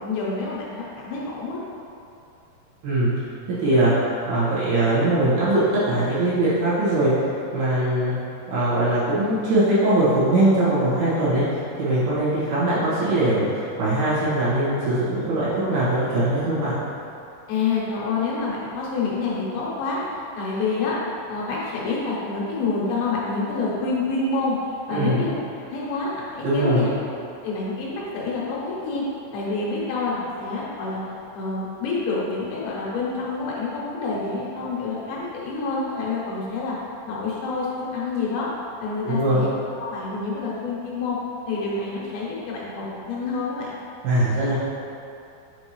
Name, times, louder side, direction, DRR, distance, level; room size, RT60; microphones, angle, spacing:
voice 1, 0.0-1.6 17.5-21.0 21.3-24.6 24.9-25.3 25.6-26.9 27.4-29.0 29.3-31.0 31.3-36.8 37.1-38.5 38.8-39.5 39.8-41.2 41.5-43.8, left 3 dB, 90° left, -5 dB, 3.1 m, -27 dB
voice 2, 3.5-7.3 7.5-8.1 8.5-16.7 24.9-25.2 26.4-26.8 39.0-39.4 44.0-44.5, right 1 dB, 90° right, -12 dB, 3.6 m, -21 dB
7.4 x 4.4 x 3.2 m, 2.7 s
omnidirectional pair, 4.3 m